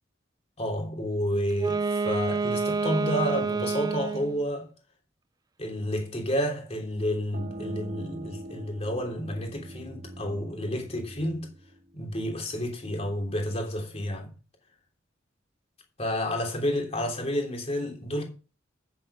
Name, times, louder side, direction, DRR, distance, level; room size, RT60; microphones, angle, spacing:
voice 1, 0.6-4.7 5.6-11.5 11.9-14.3 16.0-18.2, equal, 35° left, 3.2 m, -30 dB
Wind instrument woodwind instrument, 1.5-4.4, right 4 dB, 20° right, 0.4 m, -28 dB
sound 1, 7.3-12.7, right 1 dB, 45° right, 1.1 m, -42 dB
9.4 x 7.6 x 5.0 m
head